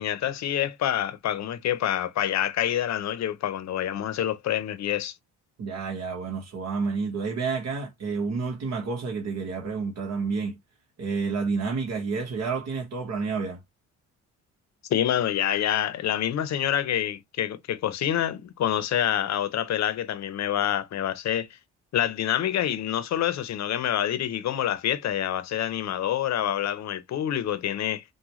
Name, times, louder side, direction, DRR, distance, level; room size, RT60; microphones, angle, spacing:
voice 1, 0.0-5.2 14.9-21.6 21.9-28.0, left 11 dB, 65° left, 0.8 m, -27 dB
voice 2, 5.6-10.6 11.0-13.6, right 4 dB, 60° right, 1.3 m, -29 dB
6.2 x 2.3 x 3.1 m
cardioid pair, 90°, 30 cm